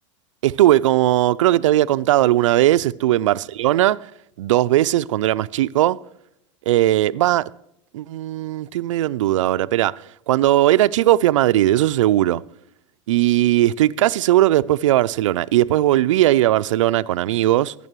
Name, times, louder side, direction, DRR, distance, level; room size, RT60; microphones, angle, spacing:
voice 1, 0.4-4.1 4.4-6.0 6.7-7.5 7.9-12.4 13.1-17.7, right 14 dB, 80° right, 0.4 m, -18 dB
22.5 x 11.0 x 3.1 m
hypercardioid pair, 105°, 16 cm